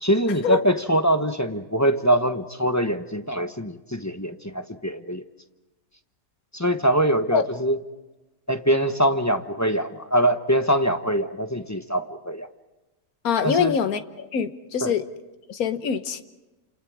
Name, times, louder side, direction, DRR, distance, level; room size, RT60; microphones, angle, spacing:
voice 1, 0.0-5.2 6.5-7.8 8.5-12.5 13.4-13.8 14.8-14.9, right 1 dB, 15° left, 7 dB, 0.9 m, -23 dB
voice 2, 13.2-15.1 15.5-16.2, left 7 dB, 80° left, 10 dB, 1.6 m, -24 dB
29.0 x 28.0 x 4.8 m, 1.1 s
omnidirectional pair, 1.5 m